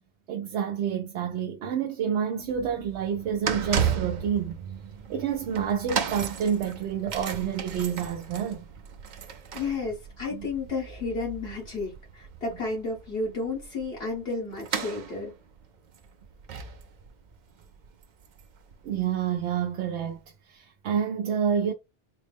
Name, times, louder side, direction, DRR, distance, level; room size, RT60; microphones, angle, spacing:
voice 1, 0.3-4.6 5.1-8.6 10.3-10.5 18.8-20.2 20.5-21.7, right 8 dB, 90° right, 0.9 m, -28 dB
sound 1, 2.4-19.4 20.0-20.1, right 7 dB, 55° right, 0.6 m, -35 dB
voice 2, 9.5-15.3, left 3 dB, 70° left, 1.7 m, -32 dB
4.3 x 2.1 x 3.3 m
omnidirectional pair, 1.1 m